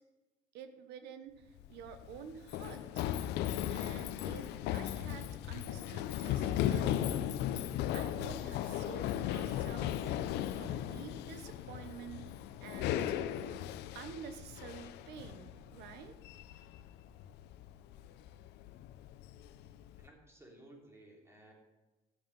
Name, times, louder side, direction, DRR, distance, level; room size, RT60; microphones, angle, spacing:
voice 1, 0.5-3.0 3.7-7.3 7.6-12.3 12.6-13.1 13.9-16.1, right 7 dB, 85° right, 9 dB, 1.1 m, -50 dB
Run, 1.5-20.1, left 11 dB, 85° left, 0.7 m, -37 dB
voice 2, 20.0-21.5, right 1 dB, 15° right, -1 dB, 3.4 m, -57 dB
13.5 x 7.2 x 5.4 m, 1.1 s
cardioid pair, 110°, 17 cm